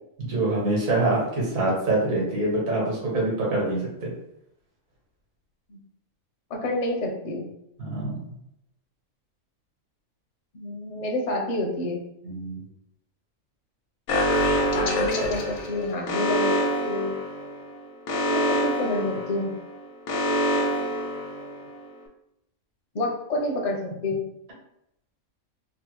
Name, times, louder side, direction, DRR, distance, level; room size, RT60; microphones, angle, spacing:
voice 1, 0.2-4.1 7.8-8.3 12.2-12.6, right 2 dB, 70° right, -4 dB, 1.6 m, -25 dB
voice 2, 6.5-7.5 10.5-12.0 14.7-17.2 18.3-19.5 22.9-24.2, left 2 dB, 55° left, 0 dB, 0.4 m, -28 dB
Alarm, 14.1-21.8, equal, 80° left, 1.1 m, -26 dB
3.5 x 2.0 x 3.0 m, 0.80 s
omnidirectional pair, 1.5 m